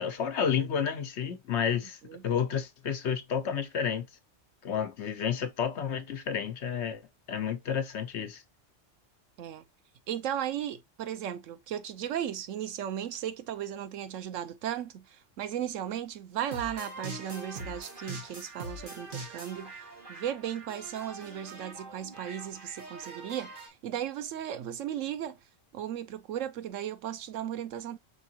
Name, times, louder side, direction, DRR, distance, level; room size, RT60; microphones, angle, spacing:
voice 1, 0.0-2.0 2.2-4.1 4.6-7.0 7.3-8.4, left 7 dB, 65° left, 1.1 m, -30 dB
voice 2, 10.1-25.4 25.7-28.0, right 10 dB, 90° right, 1.0 m, -36 dB
sound 1, 16.5-23.7, right 2 dB, 45° right, 1.6 m, -43 dB
5.2 x 3.6 x 2.8 m
omnidirectional pair, 1.3 m